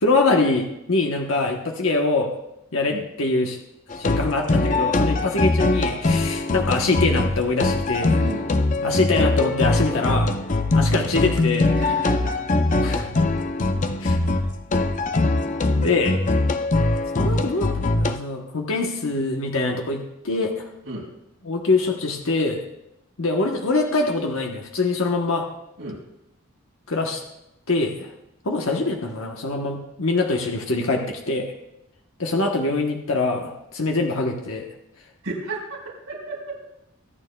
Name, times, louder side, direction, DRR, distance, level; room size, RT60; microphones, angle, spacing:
voice 1, 0.0-2.3 2.7-3.6 3.9-8.2 8.8-10.3 10.7-11.7 12.7-13.2 14.0-14.2 15.8-16.2 17.1-20.7 21.4-22.6 23.2-25.5 26.9-27.2 27.7-28.1 28.4-31.5 32.2-34.7, left 3 dB, 70° left, 2 dB, 1.1 m, -24 dB
sound 1, 3.9-18.2, left 2 dB, 35° left, 0.5 m, -22 dB
voice 2, 11.8-12.4 20.8-21.0 25.8-26.0 35.2-35.6 36.1-36.5, right 2 dB, 75° right, -2 dB, 4.8 m, -32 dB
23.5 x 8.9 x 2.3 m, 0.85 s
head